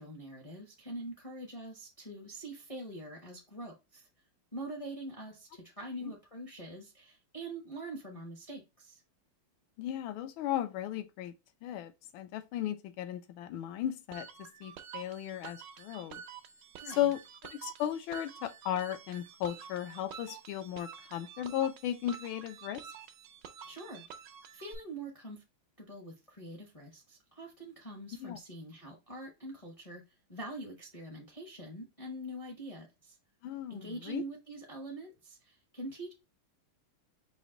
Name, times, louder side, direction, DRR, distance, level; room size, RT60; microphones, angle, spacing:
voice 1, 0.0-4.1 4.5-9.0 16.8-17.0 23.6-24.0 24.5-25.4 25.8-30.0 30.3-33.2 33.7-36.1, right 1 dB, 35° left, 0.5 m, -44 dB
voice 2, 9.8-11.3 11.6-14.3 14.6-16.2 16.9-17.2 17.6-22.8 28.2-28.4 33.4-34.2, left 11 dB, 75° left, 1.4 m, -35 dB
sound 1, 14.1-24.7, right 8 dB, 70° right, 1.1 m, -49 dB
5.1 x 2.5 x 3.8 m
omnidirectional pair, 2.4 m